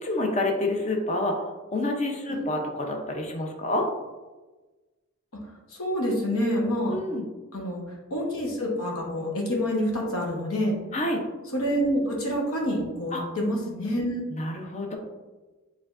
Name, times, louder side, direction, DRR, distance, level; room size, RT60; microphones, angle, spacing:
voice 1, 0.0-1.4 1.7-3.8 6.9-7.3 10.9-11.2 13.1-13.2 14.3-15.0, left 2 dB, 30° left, 2 dB, 0.6 m, -28 dB
voice 2, 5.7-7.0 7.5-7.8 8.1-10.8 11.5-14.2, equal, 85° left, -1 dB, 1.0 m, -27 dB
4.9 x 3.3 x 2.5 m, 1.2 s
head